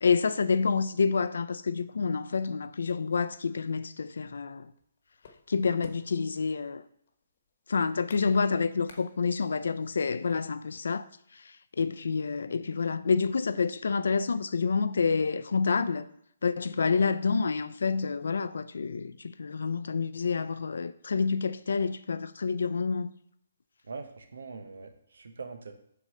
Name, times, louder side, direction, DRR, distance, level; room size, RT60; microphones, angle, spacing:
voice 1, 0.0-4.7 5.5-6.8 7.7-11.0 11.8-16.1 16.4-23.1, left 5 dB, 80° left, 0.4 m, -28 dB
sound 1, 4.7-9.7, left 4 dB, 50° left, 1.0 m, -53 dB
voice 2, 23.8-25.7, right 4 dB, 85° right, 1.0 m, -42 dB
6.0 x 3.8 x 5.6 m
hypercardioid pair, 165°, 0 cm